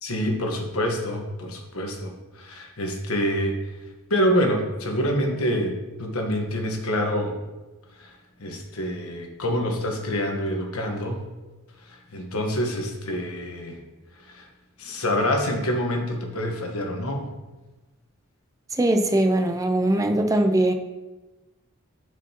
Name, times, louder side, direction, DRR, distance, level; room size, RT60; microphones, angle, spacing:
voice 1, 0.0-3.5 4.1-7.4 8.0-8.1 8.4-11.2 11.9-13.8 14.3-14.5 14.8-17.3, equal, 80° left, 2 dB, 1.2 m, -26 dB
voice 2, 18.8-20.7, right 1 dB, 15° right, 5 dB, 0.4 m, -21 dB
10.5 x 5.0 x 2.9 m, 1.1 s
head